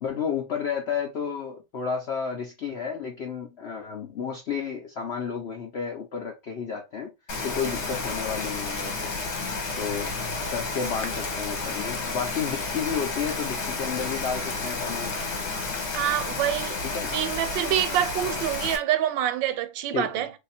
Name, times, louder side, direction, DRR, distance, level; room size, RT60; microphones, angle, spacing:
voice 1, 0.0-7.1 7.4-9.1 9.8-15.1 16.8-17.2 18.2-18.4 19.9-20.2, left 6 dB, 65° left, 0.6 m, -32 dB
Rain, 7.3-18.8, left 3 dB, 45° left, 1.1 m, -31 dB
voice 2, 15.9-16.8 17.1-20.3, right 11 dB, 85° right, 1.3 m, -26 dB
3.4 x 2.8 x 4.1 m
omnidirectional pair, 2.0 m